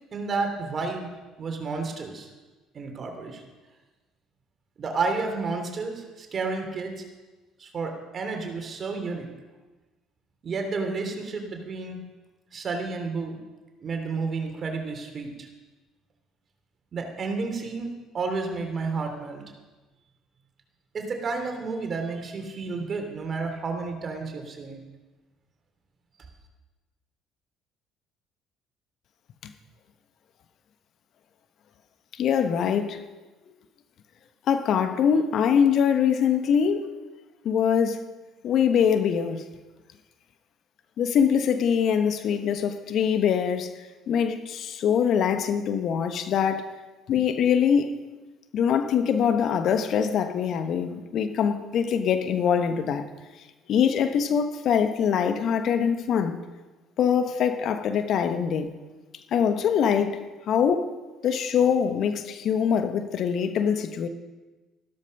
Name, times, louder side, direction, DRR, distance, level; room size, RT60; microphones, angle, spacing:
voice 1, 0.1-1.1 1.4-2.3 2.7-3.4 4.8-7.0 7.6-9.3 10.4-12.0 12.5-13.4 13.8-15.5 16.9-19.4 20.9-24.8, right 4 dB, 40° right, 3.2 m, -31 dB
voice 2, 32.1-33.0 34.5-36.9 37.4-38.1 38.4-39.4 41.0-43.7 44.1-46.8 47.1-48.1 48.5-53.1 53.7-56.4 57.0-58.7 59.3-60.2 60.5-60.9 61.2-64.1, left 7 dB, 55° left, 1.1 m, -23 dB
14.5 x 13.0 x 5.5 m
hypercardioid pair, 55°, 0 cm